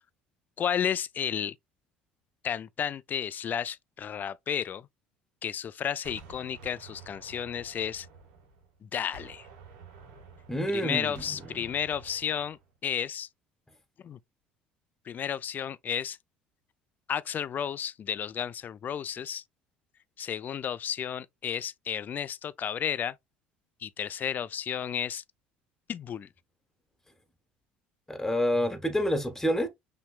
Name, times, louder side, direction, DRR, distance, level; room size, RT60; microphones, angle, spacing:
voice 1, 0.6-1.5 2.4-4.9 5.4-8.1 8.8-9.5 10.7-13.3 14.0-14.2 15.1-16.2 17.1-19.4 20.2-23.2 23.8-25.2 25.9-26.3, left 8 dB, 40° left, 0.4 m, -32 dB
Gunshot gunfire, 6.0-8.8 9.1-12.7, right 4 dB, 75° right, 1.7 m, -50 dB
voice 2, 10.5-11.2 28.1-29.7, equal, 10° left, 1.4 m, -27 dB
5.8 x 3.1 x 2.4 m
hypercardioid pair, 70°, 5 cm